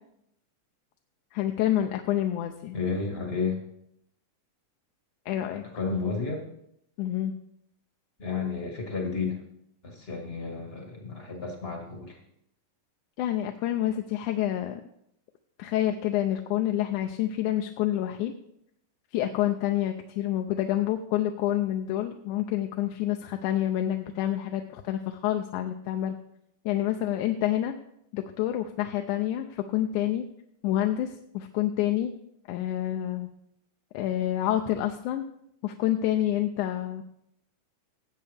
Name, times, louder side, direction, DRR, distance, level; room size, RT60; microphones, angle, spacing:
voice 1, 1.3-2.8 5.3-5.6 7.0-7.3 13.2-14.8 15.6-18.3 19.1-26.2 26.7-27.8 28.1-30.3 30.6-32.1 32.5-33.3 33.9-35.3 35.6-37.0, left 12 dB, 80° left, 5 dB, 2.0 m, -28 dB
voice 2, 2.7-3.6 5.6-6.5 8.2-9.4 9.8-12.2, left 4 dB, 35° left, 1 dB, 1.0 m, -32 dB
17.0 x 8.1 x 3.4 m, 0.76 s
omnidirectional pair, 3.7 m